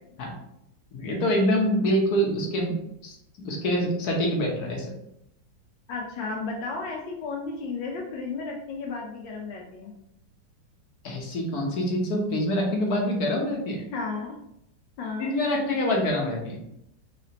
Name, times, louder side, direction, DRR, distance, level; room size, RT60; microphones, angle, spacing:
voice 1, 0.9-2.8 3.0-4.9 11.0-13.8 15.2-16.6, equal, 60° left, 0 dB, 1.4 m, -25 dB
voice 2, 5.9-9.9 13.9-14.4 15.0-15.3, left 4 dB, 85° left, -1 dB, 1.4 m, -33 dB
3.9 x 3.3 x 2.8 m, 0.78 s
omnidirectional pair, 2.0 m